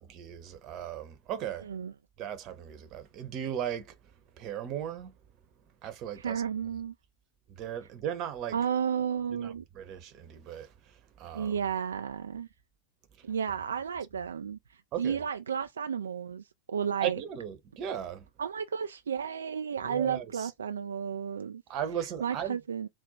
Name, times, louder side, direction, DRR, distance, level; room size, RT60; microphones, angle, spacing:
voice 1, 0.1-1.7 2.2-4.0 4.4-5.1 5.8-6.4 7.5-8.6 9.4-11.5 14.9-15.2 17.0-18.2 19.8-20.5 21.7-22.6, right 10 dB, 35° right, 0.9 m, -37 dB
voice 2, 1.6-1.9 6.1-6.9 8.5-9.6 11.3-12.5 13.2-17.2 18.4-21.6 22.2-22.9, right 7 dB, 70° right, 0.3 m, -32 dB
4.4 x 2.0 x 4.1 m
figure-of-eight pair, 90°, 0 cm